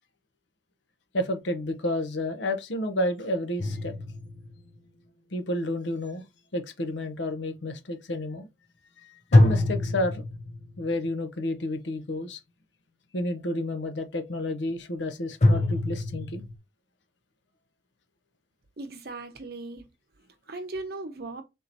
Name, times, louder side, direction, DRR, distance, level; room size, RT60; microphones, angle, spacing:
voice 1, 1.1-3.9 5.3-6.2 6.5-8.5 9.3-10.2 10.8-12.4 13.1-16.4, left 1 dB, 70° left, 0.8 m, -30 dB
sound 1, 3.6-4.8 9.3-10.9 15.4-16.5, left 1 dB, 35° left, 0.5 m, -24 dB
voice 2, 18.8-19.9 20.5-21.4, right 2 dB, 50° right, 0.8 m, -37 dB
3.7 x 2.9 x 3.9 m
head